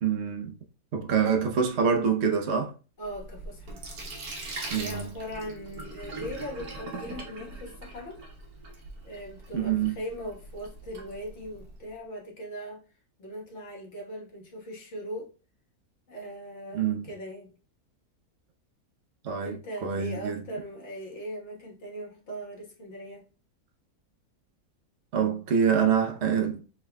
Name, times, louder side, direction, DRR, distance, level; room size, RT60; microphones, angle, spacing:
voice 1, 0.0-0.5 0.9-2.7 4.7-5.2 9.5-9.9 16.7-17.1 19.2-19.6 19.8-20.4 25.1-26.6, right 7 dB, 55° right, 0.9 m, -26 dB
voice 2, 3.0-3.9 4.7-8.2 9.0-12.8 13.2-15.3 16.1-17.5 19.4-23.3, equal, 50° left, 1.6 m, -39 dB
Sink (filling or washing), 3.0-11.8, right 2 dB, 75° right, 1.4 m, -41 dB
5.5 x 3.6 x 2.2 m
omnidirectional pair, 1.6 m